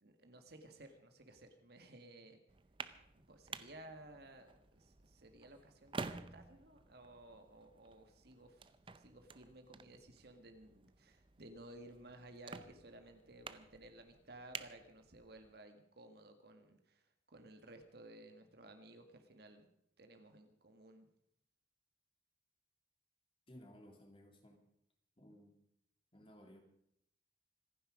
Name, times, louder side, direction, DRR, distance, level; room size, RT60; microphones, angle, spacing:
voice 1, 0.0-2.4 3.2-19.7 20.0-21.1, right 1 dB, 55° right, 6 dB, 1.8 m, -57 dB
sound 1, 2.5-15.6, right 4 dB, 25° right, 0.6 m, -52 dB
voice 2, 23.5-24.6 25.2-25.6 26.1-26.6, equal, 30° left, 3 dB, 2.6 m, -58 dB
26.0 x 10.0 x 5.0 m, 0.73 s
head